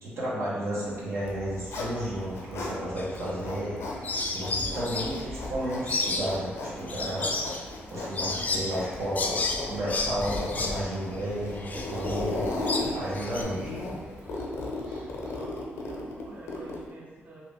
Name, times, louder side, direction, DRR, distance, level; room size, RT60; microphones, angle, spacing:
voice 1, 0.0-3.8 4.3-7.3 7.9-12.7 12.9-13.6, right 1 dB, 80° right, -8 dB, 1.3 m, -32 dB
Zipper (clothing), 1.1-2.8 3.1-16.9, left 2 dB, 85° left, 0.6 m, -36 dB
sound 1, 1.2-15.3, equal, 60° right, 1.5 m, -48 dB
sound 2, 3.0-3.7 4.0-13.4, left 3 dB, 35° left, 0.4 m, -32 dB
voice 2, 15.3-17.4, right 2 dB, 35° right, -4 dB, 0.5 m, -47 dB
2.9 x 2.8 x 3.4 m, 1.4 s
cardioid pair, 100°, 5 cm